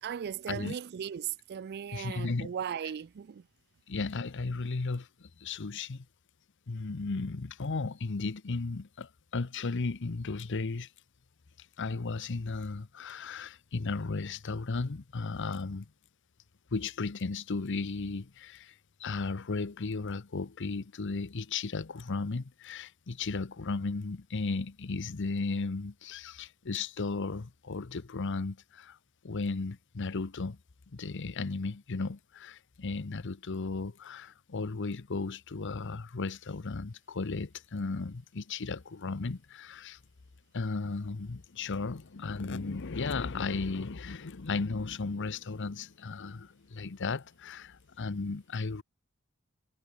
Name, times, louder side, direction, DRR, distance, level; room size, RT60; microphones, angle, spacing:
voice 1, 0.0-3.4, right 8 dB, 50° right, 0.4 m, -37 dB
voice 2, 1.9-2.5 3.9-6.1 6.7-10.9 11.8-15.9 16.7-18.7 19.0-29.0 29.2-30.6 30.9-40.0 40.5-48.8, left 3 dB, 60° left, 0.8 m, -35 dB
head